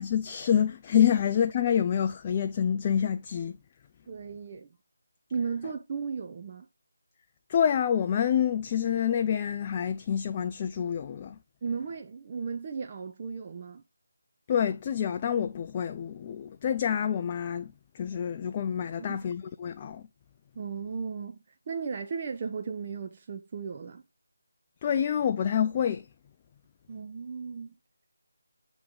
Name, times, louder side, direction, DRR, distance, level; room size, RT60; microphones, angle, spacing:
voice 1, 0.0-3.6 7.5-11.4 14.5-20.0 24.8-26.1, left 8 dB, 25° left, 0.3 m, -27 dB
voice 2, 4.1-4.7 5.3-6.6 11.6-13.8 18.9-19.2 20.6-24.0 26.9-27.7, right 5 dB, 30° right, 0.5 m, -35 dB
8.4 x 3.0 x 3.8 m
figure-of-eight pair, 165°, 0 cm